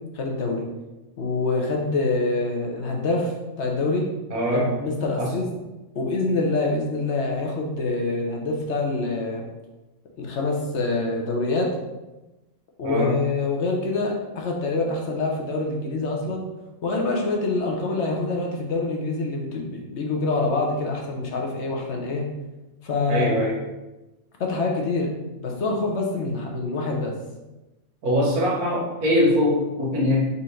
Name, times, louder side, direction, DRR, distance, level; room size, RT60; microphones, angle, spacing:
voice 1, 0.1-0.7 1.2-4.1 4.5-5.5 5.9-9.5 10.2-11.7 12.8-16.4 16.8-22.2 22.8-23.4 24.4-25.1 25.4-27.1, left 3 dB, 55° left, 0 dB, 1.0 m, -25 dB
voice 2, 4.3-4.8 5.2-5.3 12.8-13.2 23.1-23.6 28.0-30.3, left 1 dB, 85° right, -4 dB, 1.6 m, -22 dB
4.2 x 2.5 x 4.3 m, 1.0 s
omnidirectional pair, 1.5 m